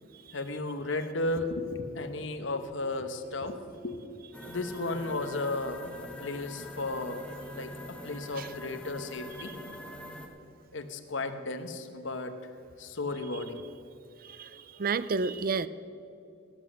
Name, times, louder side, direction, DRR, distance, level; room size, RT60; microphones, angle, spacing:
voice 1, 0.3-4.2 4.5-5.9 6.2-7.3 7.5-7.7 8.0-9.5 9.8-10.0 10.7-12.4 12.8-13.6, left 2 dB, 70° left, 9 dB, 1.0 m, -34 dB
sound 1, 4.3-10.3, left 1 dB, 5° left, 1.1 m, -44 dB
voice 2, 14.8-15.7, right 4 dB, 45° right, 15 dB, 0.5 m, -29 dB
18.0 x 8.1 x 6.3 m, 2.6 s
head